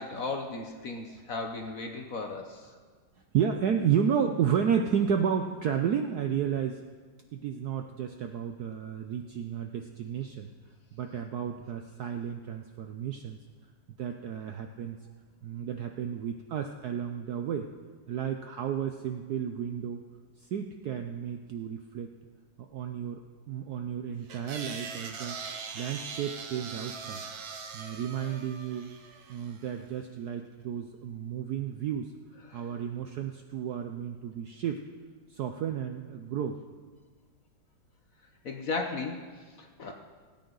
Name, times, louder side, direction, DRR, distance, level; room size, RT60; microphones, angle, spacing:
voice 1, 0.0-2.7 32.5-32.7 38.4-39.9, left 3 dB, 55° left, 3 dB, 1.0 m, -36 dB
voice 2, 3.3-6.8 7.3-10.5 10.9-13.4 14.0-15.0 15.4-17.7 18.1-20.0 20.5-22.1 22.7-23.2 23.5-25.4 25.7-27.2 27.7-28.9 29.3-32.1 32.5-34.8 35.3-36.6, right 8 dB, 70° right, 5 dB, 0.9 m, -32 dB
sound 1, 24.3-29.6, right 5 dB, 55° right, 1.3 m, -41 dB
21.0 x 9.1 x 3.9 m, 1.5 s
omnidirectional pair, 2.3 m